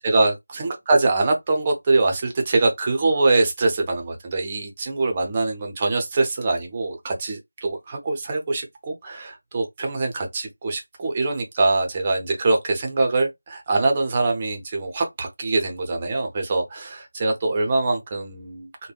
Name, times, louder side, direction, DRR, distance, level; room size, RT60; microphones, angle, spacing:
voice 1, 0.0-18.9, right 3 dB, 20° right, 0.6 m, -23 dB
3.3 x 2.1 x 2.3 m
figure-of-eight pair, 170°, 0 cm